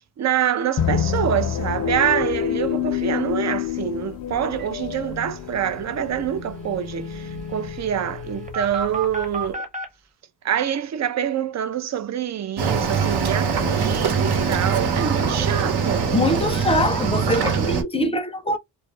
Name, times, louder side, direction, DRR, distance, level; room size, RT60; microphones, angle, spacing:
voice 1, 0.2-9.7 10.4-16.1, right 9 dB, 40° right, 0.5 m, -26 dB
sound 1, 0.8-9.5, left 9 dB, 55° left, 0.7 m, -28 dB
sound 2, 4.6-4.7 4.9-5.0 5.3-9.9, right 3 dB, 20° right, 0.9 m, -35 dB
Cricket / Waves surf, 12.6-17.8, right 5 dB, 65° right, 1.1 m, -22 dB
voice 2, 16.1-18.6, left 1 dB, 15° left, 0.5 m, -23 dB
2.4 x 2.1 x 3.1 m
cardioid pair, 95°, 43 cm